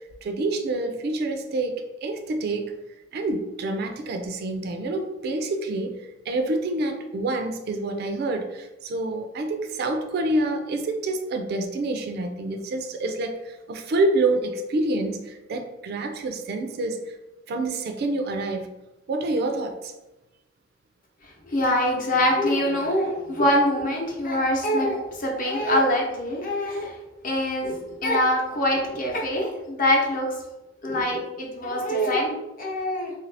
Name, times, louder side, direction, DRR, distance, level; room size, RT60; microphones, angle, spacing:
voice 1, 0.2-1.8 2.0-2.7 3.1-5.9 6.3-17.0 17.5-18.7 19.1-19.9, right 2 dB, 55° right, 5 dB, 0.4 m, -27 dB
voice 2, 21.5-26.9 27.2-30.3 30.8-33.1, left 1 dB, 45° left, -1 dB, 0.7 m, -24 dB
2.8 x 2.5 x 3.3 m, 1.0 s
head